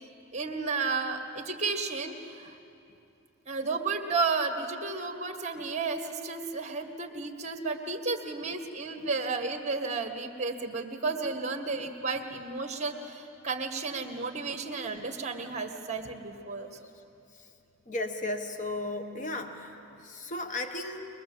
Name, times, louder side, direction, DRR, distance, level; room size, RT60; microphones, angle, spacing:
voice 1, 0.3-2.5 3.5-16.7, right 4 dB, 30° right, 5 dB, 1.5 m, -32 dB
voice 2, 17.9-21.1, left 2 dB, 35° left, 6 dB, 1.2 m, -35 dB
22.5 x 21.5 x 7.8 m, 2.8 s
head